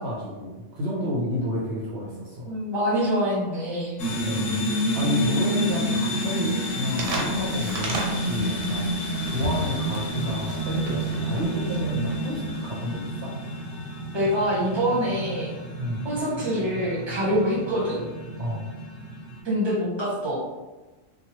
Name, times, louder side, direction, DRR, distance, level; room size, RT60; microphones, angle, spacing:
voice 1, 0.0-2.5 4.2-4.6 4.9-8.9 9.2-13.3 15.8-16.1 18.4-18.7, equal, 65° right, -5 dB, 0.7 m, -30 dB
voice 2, 2.4-4.0 14.1-15.5 16.0-18.0 19.4-20.4, equal, 25° right, -7 dB, 0.9 m, -25 dB
sound 1, 4.0-19.4, equal, 75° left, 1.0 m, -29 dB
sound 2, 6.9-12.4, right 2 dB, 90° right, 0.9 m, -34 dB
2.9 x 2.2 x 2.9 m, 1.2 s
omnidirectional pair, 1.2 m